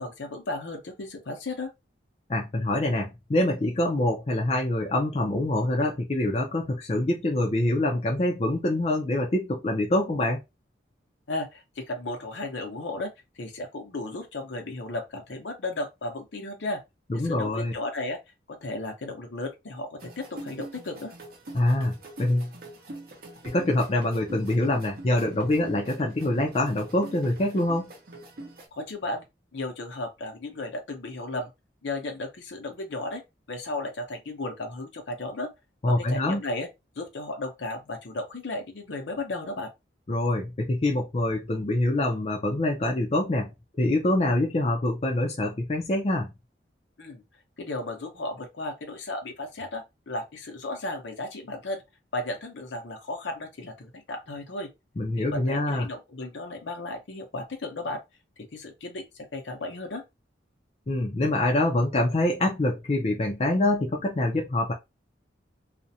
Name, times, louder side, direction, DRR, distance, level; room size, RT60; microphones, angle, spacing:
voice 1, 0.0-1.7 11.3-13.1 13.4-16.8 17.1-18.2 18.5-21.1 28.7-29.3 29.5-31.5 31.8-33.2 33.5-35.5 35.9-36.7 37.0-39.7 47.0-47.2 47.6-51.8 52.1-54.7 55.2-58.0 58.5-60.0, left 2 dB, 75° left, 0.7 m, -34 dB
voice 2, 2.3-10.4 17.1-17.7 21.5-22.5 23.4-27.9 35.8-36.4 40.1-43.5 43.8-46.3 55.0-55.9 60.9-64.7, left 1 dB, 35° left, 0.4 m, -25 dB
sound 1, 20.0-28.7, right 2 dB, 50° right, 0.6 m, -44 dB
2.4 x 2.1 x 2.7 m
head